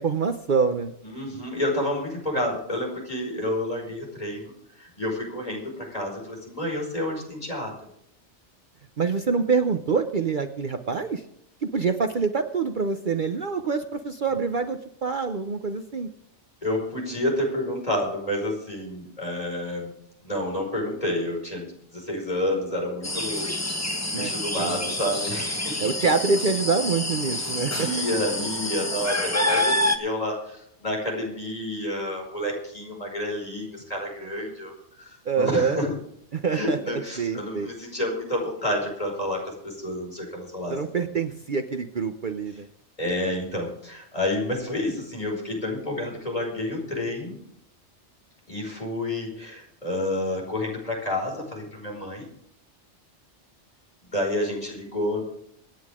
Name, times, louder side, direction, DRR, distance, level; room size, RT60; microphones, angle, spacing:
voice 1, 0.0-0.9 9.0-11.3 11.6-16.1 24.1-24.9 25.8-27.9 35.2-35.8 36.3-37.7 40.7-42.7, right 5 dB, 50° right, 7 dB, 0.9 m, -26 dB
voice 2, 1.0-4.5 4.8-7.7 16.6-19.9 20.2-23.9 24.1-25.8 27.3-35.9 36.5-40.8 41.1-41.2 43.0-47.4 48.5-52.3 54.1-55.2, left 1 dB, 35° left, 0 dB, 5.4 m, -29 dB
sound 1, 23.0-30.0, left 1 dB, 15° left, 1.2 m, -27 dB
25.0 x 9.5 x 3.7 m, 0.72 s
omnidirectional pair, 1.2 m